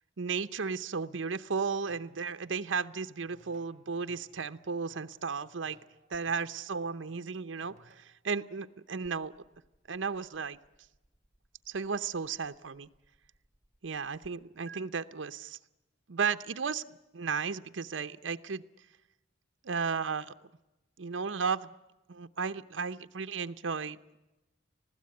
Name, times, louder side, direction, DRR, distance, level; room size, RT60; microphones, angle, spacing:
voice 1, 0.2-5.8 6.1-9.3 9.9-10.6 11.7-12.9 13.8-15.6 16.1-16.8 17.1-18.6 19.6-20.3 21.0-21.7 22.1-24.0, right 5 dB, 80° right, 9 dB, 0.7 m, -34 dB
Plucked string instrument, 1.7-8.2, right 3 dB, 40° right, 2.4 m, -63 dB
sound 1, 6.1-14.3 14.7-14.8, right 6 dB, 5° left, 2.0 m, -62 dB
20.5 x 15.5 x 9.5 m, 1.0 s
head